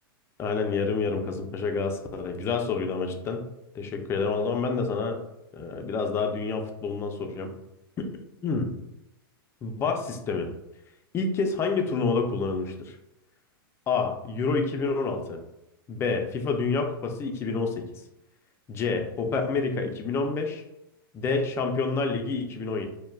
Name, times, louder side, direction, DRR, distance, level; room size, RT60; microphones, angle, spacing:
voice 1, 0.4-3.4 3.7-5.2 5.5-7.5 8.0-8.7 9.6-10.5 11.1-13.0 13.9-15.4 15.9-17.8 18.7-20.6 21.1-22.9, left 4 dB, 20° left, 4 dB, 0.3 m, -28 dB
3.2 x 2.1 x 2.2 m, 0.89 s
hypercardioid pair, 120°, 12 cm